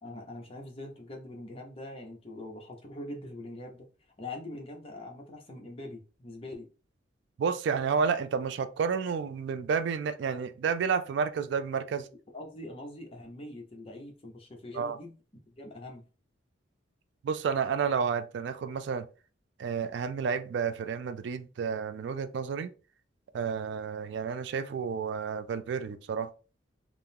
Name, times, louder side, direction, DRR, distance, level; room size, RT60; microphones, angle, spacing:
voice 1, 0.0-3.9 4.2-6.7 12.3-15.1 15.5-16.0, left 1 dB, 30° left, 0.7 m, -43 dB
voice 2, 7.4-12.1 14.7-15.0 17.2-19.0 19.6-22.7 23.3-26.3, right 6 dB, 65° right, 0.3 m, -30 dB
3.5 x 2.0 x 2.7 m
head